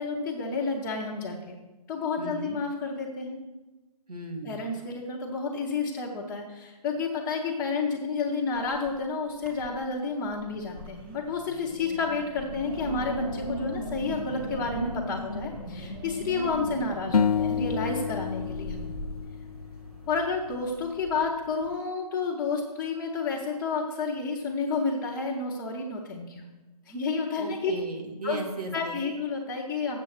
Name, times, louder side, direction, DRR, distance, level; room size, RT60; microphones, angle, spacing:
voice 1, 0.0-1.6 1.9-3.4 4.4-18.9 20.1-26.4 26.9-27.7 28.2-28.4 28.7-30.0, left 4 dB, 5° left, -7 dB, 0.4 m, -30 dB
voice 2, 2.2-2.6 4.1-4.8 27.4-28.9, right 2 dB, 70° right, 3 dB, 2.0 m, -36 dB
Wind, 8.5-9.0 9.3-9.9 10.3-21.7, equal, 15° right, 1.0 m, -38 dB
sound 1, 17.1-20.4, left 7 dB, 70° left, 0.5 m, -29 dB
8.1 x 6.8 x 6.4 m, 1.1 s
figure-of-eight pair, 155°, 20 cm